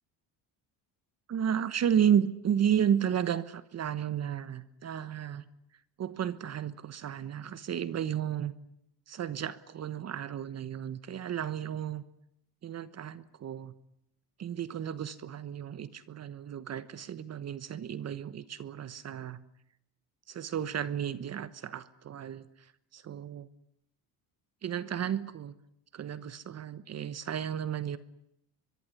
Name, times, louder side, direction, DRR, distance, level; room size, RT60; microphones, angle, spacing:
voice 1, 1.3-5.5 6.0-8.5 9.1-12.0 12.6-13.7 14.4-19.4 20.3-23.5 24.6-25.5 25.9-28.0, right 9 dB, 35° right, 15 dB, 1.2 m, -32 dB
24.5 x 23.0 x 9.8 m, 0.77 s
cardioid pair, 160°, 42 cm